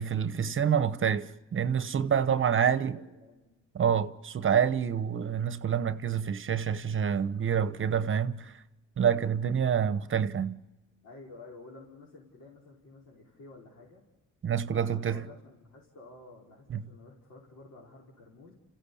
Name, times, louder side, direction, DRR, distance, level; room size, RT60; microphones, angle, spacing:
voice 1, 0.0-3.0 3.7-8.5 9.0-10.6 14.4-15.2 16.7-16.8, right 8 dB, 40° right, 1.0 m, -27 dB
voice 2, 2.3-2.6 2.9-3.6 11.0-14.0 14.7-18.5, left 2 dB, 70° left, 5.2 m, -51 dB
30.0 x 15.5 x 8.6 m
cardioid pair, 90°, 30 cm